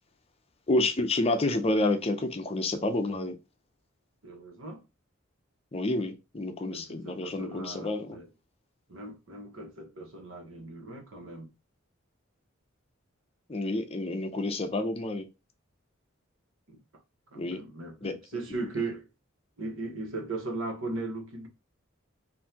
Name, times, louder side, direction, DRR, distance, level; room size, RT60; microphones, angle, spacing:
voice 1, 0.7-3.4 5.7-8.2 13.5-15.3 17.4-17.6 18.0-18.2, left 2 dB, 30° left, 0.6 m, -29 dB
voice 2, 4.2-4.8 6.7-8.3 8.9-11.5 16.7-16.8 17.3-19.1 19.6-21.5, right 3 dB, 75° right, 1.3 m, -38 dB
5.4 x 2.6 x 2.8 m
head